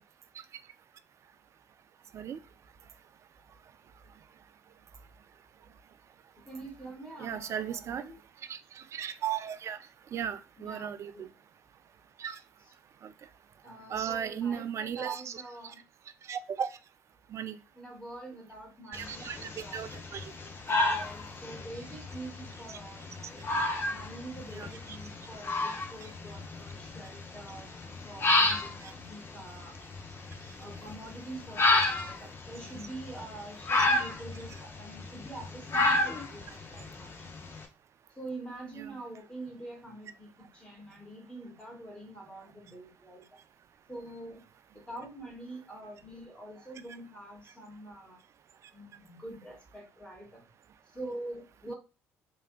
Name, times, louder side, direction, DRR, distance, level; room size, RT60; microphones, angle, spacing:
voice 1, 6.4-8.2 10.6-11.3 13.6-15.8 17.7-19.9 20.6-23.6 23.9-29.7 30.6-37.3 38.1-43.4 43.9-44.4 44.7-48.2 48.7-50.4 50.9-51.7, right 2 dB, 15° left, 1 dB, 1.6 m, -45 dB
voice 2, 7.2-8.1 8.5-9.8 10.1-11.3 12.2-12.4 13.0-13.1 13.9-15.7 16.3-16.7 17.3-17.6 18.9-20.3 22.7-22.8 24.5-25.0 26.0-26.1 28.8-28.9 33.8-33.9 38.7-39.0 51.7-51.8, right 8 dB, 40° right, 13 dB, 0.3 m, -36 dB
sound 1, 18.9-37.6, left 2 dB, 35° left, 0.7 m, -32 dB
3.2 x 2.8 x 2.2 m, 0.30 s
figure-of-eight pair, 50°, 7 cm